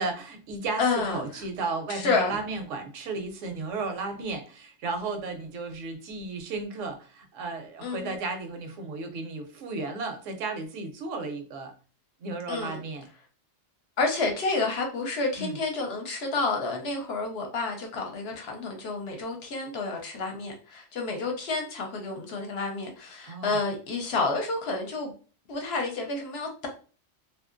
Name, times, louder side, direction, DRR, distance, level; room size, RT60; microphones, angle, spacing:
voice 1, 0.0-11.7 12.2-13.0 15.4-15.6 23.2-23.6, right 3 dB, 80° right, 0.9 m, -34 dB
voice 2, 0.8-1.4 1.9-2.3 7.8-8.1 12.5-12.8 14.0-25.1 25.5-26.7, left 3 dB, 60° left, 0.8 m, -30 dB
2.7 x 2.4 x 2.4 m
omnidirectional pair, 1.3 m